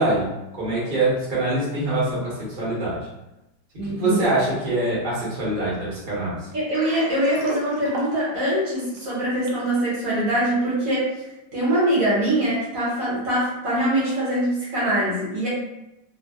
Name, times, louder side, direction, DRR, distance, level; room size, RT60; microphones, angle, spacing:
voice 1, 0.0-3.1 3.8-6.5, right 2 dB, 40° right, -8 dB, 1.0 m, -24 dB
voice 2, 3.8-4.2 6.5-11.1 11.5-15.5, right 1 dB, 60° right, -8 dB, 1.3 m, -23 dB
Water, 6.5-9.7, right 2 dB, 85° right, 1.2 m, -36 dB
2.8 x 2.2 x 2.2 m, 0.94 s
omnidirectional pair, 1.7 m